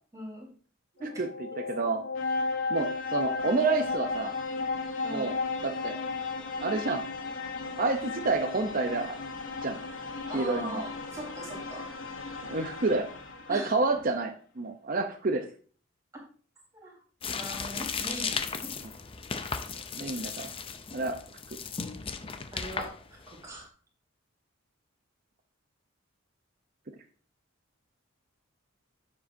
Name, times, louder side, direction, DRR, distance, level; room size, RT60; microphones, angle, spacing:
voice 1, 0.1-0.5 1.0-1.1 5.0-5.3 10.3-11.9 13.5-14.0 16.7-17.0 17.3-18.7 22.5-22.9 23.3-23.7, equal, 15° right, -3 dB, 3.9 m, -40 dB
sound 1, 1.0-13.8, left 3 dB, 65° left, 1.1 m, -35 dB
voice 2, 1.7-2.0 2.7-4.3 5.1-5.3 5.6-6.0 6.6-7.0 7.8-9.2 9.6-9.8 10.3-10.8 12.5-13.1 13.5-15.5 19.9-20.5 20.9-21.2, right 3 dB, 40° right, 5 dB, 0.7 m, -29 dB
sound 2, 17.2-23.6, left 5 dB, 25° left, 0.5 m, -36 dB
10.5 x 7.6 x 2.7 m, 0.42 s
head